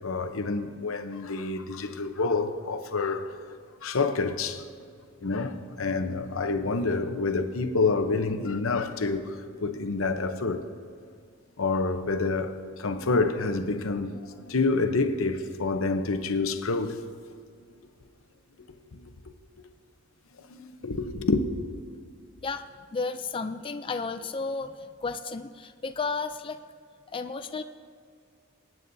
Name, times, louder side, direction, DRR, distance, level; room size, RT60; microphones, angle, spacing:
voice 1, 0.0-3.3 3.8-4.7 5.2-10.6 11.6-17.0 18.9-19.1 20.5-21.4, left 3 dB, 85° left, 0.9 m, -28 dB
voice 2, 22.9-26.6 27.1-27.6, left 4 dB, 25° left, 0.3 m, -33 dB
24.5 x 9.4 x 2.7 m
head